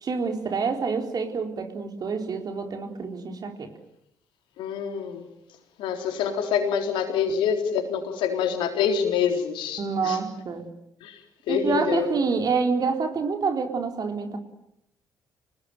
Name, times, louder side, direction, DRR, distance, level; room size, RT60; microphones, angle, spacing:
voice 1, 0.0-3.7 9.8-10.7 11.5-14.4, right 5 dB, 45° right, 5 dB, 4.2 m, -27 dB
voice 2, 4.6-5.2 5.8-10.2 11.0-11.2 11.5-12.1, left 7 dB, 65° left, 5 dB, 3.9 m, -26 dB
26.5 x 20.0 x 9.3 m, 0.79 s
figure-of-eight pair, 45°, 9 cm